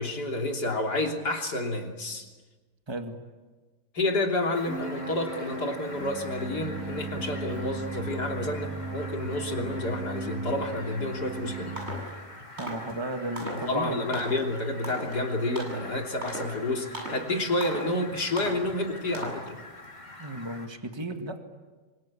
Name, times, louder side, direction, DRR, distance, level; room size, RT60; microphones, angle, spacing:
voice 1, 0.0-2.3 3.9-11.8 13.4-19.5, left 2 dB, 85° left, 2 dB, 3.7 m, -30 dB
voice 2, 2.9-3.2 12.6-14.0 20.2-21.4, right 2 dB, 15° right, 5 dB, 2.0 m, -34 dB
Fowl, 4.5-20.7, left 2 dB, 25° left, 2.8 m, -45 dB
sound 1, 4.7-11.9, right 2 dB, 60° right, 6.7 m, -36 dB
sound 2, 11.2-11.4 11.8-12.1 12.6-12.9 13.4-13.7 14.1-14.5 14.8-15.2 15.6-15.9 16.2-16.6 16.9-17.2 17.6-18.0 18.4-18.6 19.1-19.5, right 1 dB, 40° right, 7.8 m, -37 dB
26.5 x 25.0 x 8.6 m, 1.3 s
omnidirectional pair, 1.7 m